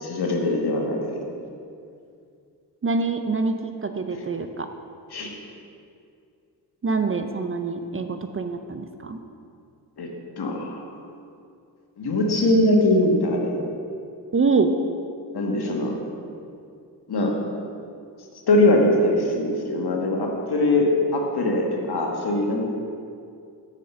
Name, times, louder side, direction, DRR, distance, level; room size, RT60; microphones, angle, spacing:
voice 1, 0.0-1.2 5.1-5.3 10.0-10.1 10.4-10.8 12.0-13.6 15.3-16.0 17.1-17.3 18.5-20.9 21.1-22.6, left 1 dB, 60° left, 0 dB, 1.5 m, -22 dB
voice 2, 2.8-4.7 6.8-9.2 14.3-14.7, right 4 dB, 30° right, 7 dB, 0.6 m, -25 dB
6.6 x 5.0 x 6.8 m, 2.4 s
supercardioid pair, 45°, 43 cm